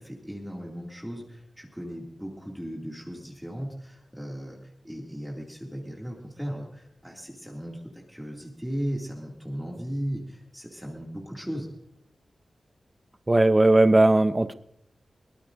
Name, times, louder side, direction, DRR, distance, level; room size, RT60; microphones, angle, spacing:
voice 1, 0.0-11.7, equal, 5° right, -2 dB, 2.3 m, -36 dB
voice 2, 13.3-14.5, right 2 dB, 20° right, 11 dB, 0.5 m, -18 dB
22.0 x 20.5 x 2.6 m, 0.76 s
wide cardioid pair, 145°, 0 cm